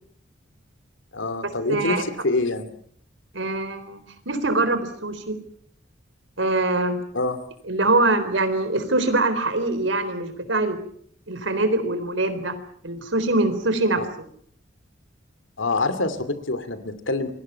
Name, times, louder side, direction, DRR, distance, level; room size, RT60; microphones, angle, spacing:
voice 1, 1.1-2.7 7.1-7.4 14.0-14.1 15.6-17.3, left 3 dB, 85° left, 12 dB, 2.8 m, -26 dB
voice 2, 1.7-2.0 3.3-4.0 4.3-5.4 6.4-7.0 7.6-10.8 11.3-12.5 12.8-14.0, right 2 dB, 75° right, 11 dB, 4.0 m, -23 dB
29.0 x 22.5 x 5.9 m, 0.62 s
head